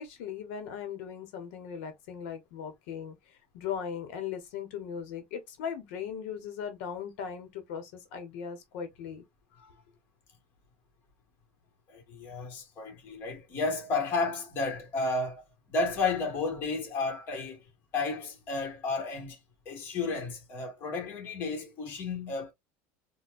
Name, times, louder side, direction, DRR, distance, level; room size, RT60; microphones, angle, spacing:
voice 1, 0.0-9.2, left 7 dB, 75° left, 0.9 m, -38 dB
voice 2, 11.9-15.4 15.7-17.6 17.9-19.4 19.6-22.5, left 3 dB, 30° left, 1.3 m, -32 dB
4.3 x 2.2 x 2.4 m
cardioid pair, 175°, 7 cm